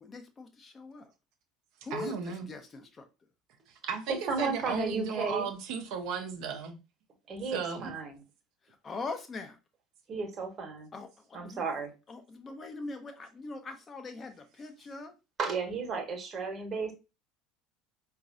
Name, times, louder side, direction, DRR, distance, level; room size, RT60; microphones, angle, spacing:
voice 1, 0.0-1.1 1.8-3.1 8.8-9.6 10.9-11.6 12.1-15.1, left 3 dB, 25° left, 0.6 m, -42 dB
voice 2, 1.9-2.5 3.7-6.8 7.5-7.9, right 6 dB, 55° right, 0.5 m, -35 dB
voice 3, 4.1-5.5 7.3-8.2 10.1-10.9 11.3-11.9 15.4-16.9, right 4 dB, 35° right, 1.0 m, -33 dB
4.7 x 2.4 x 2.5 m
figure-of-eight pair, 65°, 0 cm